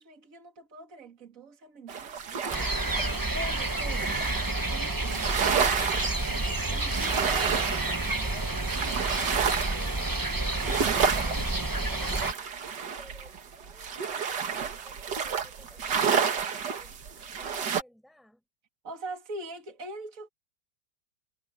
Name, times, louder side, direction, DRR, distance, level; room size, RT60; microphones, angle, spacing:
voice 1, 0.0-2.2 3.0-4.3 4.7-5.3 6.7-7.8 18.8-20.3, right 2 dB, 45° right, 2.8 m, -42 dB
sound 1, 1.9-4.6 5.1-17.8, right 6 dB, 65° right, 2.1 m, -31 dB
sound 2, 2.5-12.3, right 2 dB, 20° right, 0.6 m, -30 dB
voice 2, 8.2-10.2 11.1-14.3 14.7-18.4, equal, ahead, 7.7 m, -55 dB
omnidirectional pair, 2.0 m